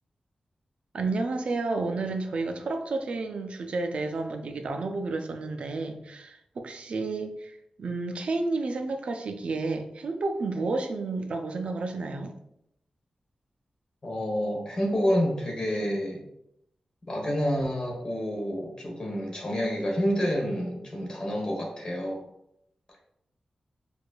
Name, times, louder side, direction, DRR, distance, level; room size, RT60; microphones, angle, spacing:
voice 1, 0.9-12.3, right 3 dB, 65° right, 5 dB, 0.4 m, -31 dB
voice 2, 14.0-16.3 17.1-22.3, equal, 40° left, -1 dB, 1.0 m, -28 dB
4.7 x 2.5 x 2.2 m, 0.76 s
wide cardioid pair, 120°, 2 cm